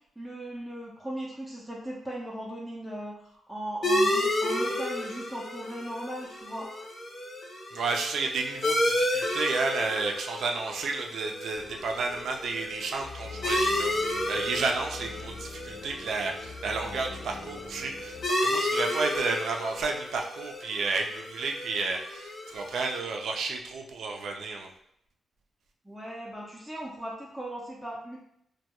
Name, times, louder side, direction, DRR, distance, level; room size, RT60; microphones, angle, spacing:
voice 1, 0.2-6.7 25.8-28.2, right 1 dB, 5° right, -4 dB, 0.4 m, -38 dB
sound 1, 3.8-23.0, left 1 dB, 40° left, 0.6 m, -32 dB
voice 2, 7.7-24.7, right 4 dB, 75° right, 2 dB, 0.4 m, -32 dB
sound 2, 11.5-18.3, left 4 dB, 90° left, 0.4 m, -45 dB
2.2 x 2.2 x 2.8 m, 0.72 s
cardioid pair, 85°, 0 cm